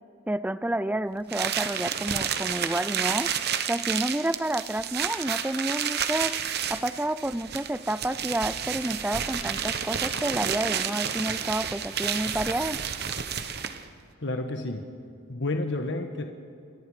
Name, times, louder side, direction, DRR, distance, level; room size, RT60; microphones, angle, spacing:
voice 1, 0.3-3.3 3.7-6.4 6.7-12.8, right 1 dB, 10° right, 16 dB, 0.4 m, -29 dB
sound 1, 1.3-13.9, right 8 dB, 50° right, 1.1 m, -30 dB
voice 2, 14.2-14.9 15.3-16.2, left 2 dB, 60° left, 5 dB, 1.4 m, -30 dB
28.5 x 23.0 x 5.0 m, 2.5 s
head